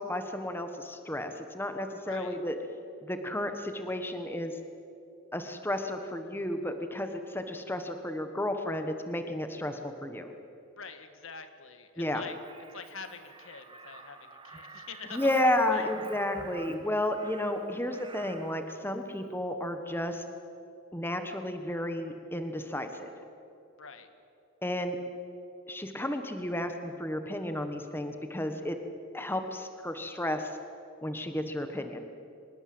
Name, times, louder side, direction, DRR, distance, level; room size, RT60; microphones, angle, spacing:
voice 1, 0.0-2.6 3.0-4.5 5.3-10.3 12.0-12.2 15.1-20.2 20.9-23.1 24.6-25.0 25.7-28.8 29.1-30.6 31.0-32.0, left 1 dB, 10° left, 6 dB, 1.3 m, -32 dB
voice 2, 2.0-2.4 10.8-12.4 12.7-15.2 15.7-15.9 23.8-24.1, left 5 dB, 70° left, 9 dB, 1.7 m, -45 dB
Crow, 12.3-18.6 20.0-20.2, right 3 dB, 25° right, 1.5 m, -48 dB
24.5 x 20.5 x 7.9 m, 2.7 s
head